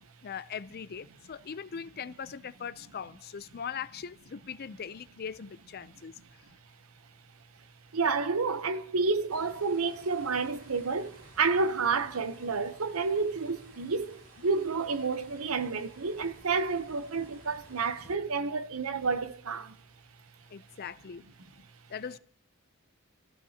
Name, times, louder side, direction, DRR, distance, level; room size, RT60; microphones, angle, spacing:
voice 1, 0.2-6.1 20.5-21.2 21.9-22.2, left 7 dB, 50° left, 0.5 m, -40 dB
voice 2, 7.9-19.7, right 4 dB, 90° right, 0.8 m, -30 dB
sound 1, 9.3-18.2, right 2 dB, 70° right, 3.2 m, -55 dB
27.5 x 15.0 x 2.8 m
head